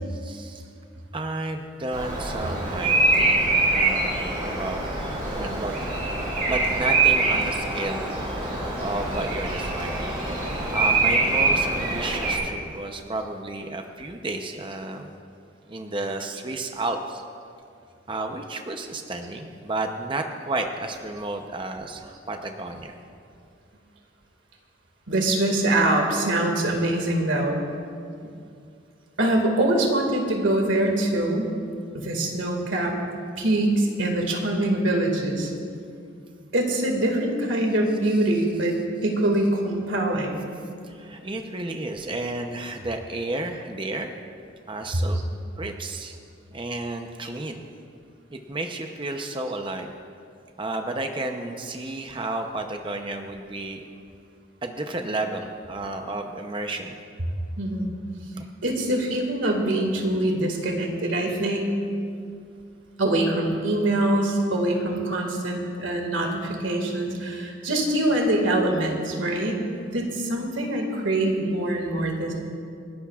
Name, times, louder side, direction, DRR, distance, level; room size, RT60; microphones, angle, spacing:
voice 1, 0.1-0.7 1.1-4.8 5.3-5.7 6.5-8.1 8.8-10.1 10.7-15.1 15.7-17.2 18.1-23.0 37.9-38.4 38.6-38.8 39.4-39.5 40.8-44.1 44.7-45.2 45.6-46.2 46.5-47.6 48.3-49.9 50.6-53.8 54.6-57.0 58.4-58.5, right 2 dB, 25° right, 4 dB, 0.7 m, -32 dB
Bird vocalization bird call bird song, 1.9-12.4, right 3 dB, 45° right, 4.1 m, -24 dB
voice 2, 25.1-27.6 29.2-31.5 31.9-32.9 33.4-35.5 36.5-38.7 39.0-40.4 57.6-57.8 58.6-61.7 63.0-69.6 69.9-72.3, right 1 dB, 75° right, 2 dB, 2.0 m, -24 dB
28.5 x 11.5 x 2.4 m, 2.4 s
head